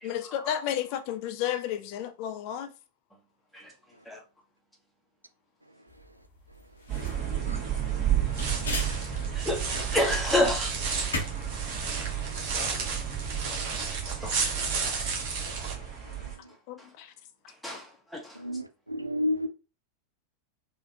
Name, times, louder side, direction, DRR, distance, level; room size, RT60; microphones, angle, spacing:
voice 1, 0.0-2.7 9.2-9.3 16.7-17.1, left 10 dB, 45° left, 0.4 m, -32 dB
sound 1, 5.9-11.2, left 3 dB, 65° left, 0.9 m, -39 dB
sound 2, 6.9-16.4, right 10 dB, 30° right, 1.6 m, -33 dB
sound 3, 8.2-15.7, right 4 dB, 45° right, 1.1 m, -33 dB
voice 2, 9.9-10.7 12.0-12.1 14.2-14.3 14.8-14.9 17.6-18.4, left 1 dB, 5° left, 1.2 m, -28 dB
voice 3, 18.4-19.5, left 1 dB, 85° right, 0.3 m, -30 dB
3.7 x 2.4 x 2.8 m
figure-of-eight pair, 90°, 0 cm